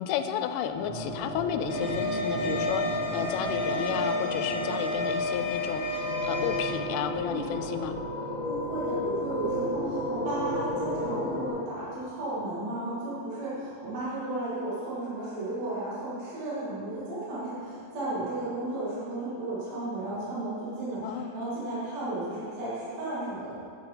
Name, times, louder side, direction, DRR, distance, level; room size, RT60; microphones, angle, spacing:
voice 1, 0.0-7.9 21.0-21.4, left 9 dB, 85° left, 8 dB, 2.5 m, -32 dB
sound 1, 0.8-11.5, equal, 70° right, 3.2 m, -33 dB
sound 2, 1.7-6.7, left 3 dB, 30° left, 2.1 m, -31 dB
voice 2, 8.4-23.5, right 2 dB, 50° right, -10 dB, 3.4 m, -34 dB
10.5 x 8.6 x 3.9 m, 2.5 s
omnidirectional pair, 4.5 m